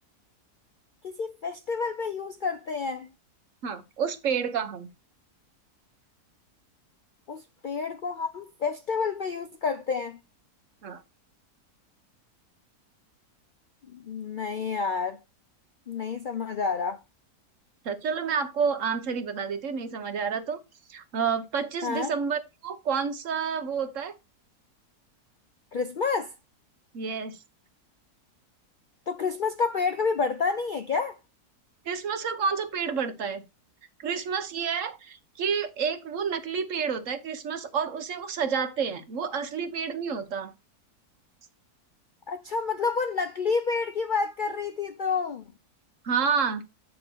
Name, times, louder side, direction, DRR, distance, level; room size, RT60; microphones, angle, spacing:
voice 1, 1.0-3.1 7.3-10.2 13.9-15.2 15.9-17.0 21.8-22.1 25.7-26.3 29.1-31.2 42.3-45.4, left 5 dB, 85° left, 0.4 m, -29 dB
voice 2, 3.6-4.9 10.8-11.0 17.8-20.6 20.9-24.1 26.9-27.4 31.8-33.4 34.0-40.5 46.0-46.6, right 6 dB, 55° right, 1.2 m, -29 dB
8.5 x 2.9 x 6.1 m
omnidirectional pair, 1.6 m